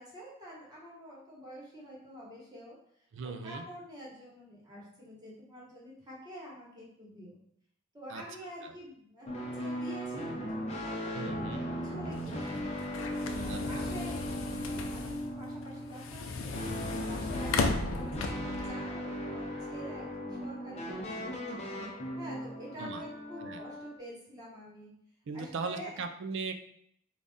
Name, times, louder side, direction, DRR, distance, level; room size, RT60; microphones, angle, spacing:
voice 1, 0.0-2.8 3.2-7.4 7.9-12.7 13.2-16.6 16.9-21.6 22.2-24.9 25.3-25.9, equal, 20° right, -5 dB, 1.2 m, -47 dB
voice 2, 3.1-3.7 8.1-8.2 8.6-8.7 11.1-11.7 13.5-13.9 22.8-23.0 23.4-23.6 25.3-26.5, right 4 dB, 60° right, 7 dB, 0.4 m, -39 dB
sound 1, 9.3-24.0, equal, 30° left, 0.6 m, -38 dB
sound 2, 12.1-18.7, left 3 dB, 75° left, 0.4 m, -36 dB
3.9 x 2.4 x 3.5 m, 0.69 s
head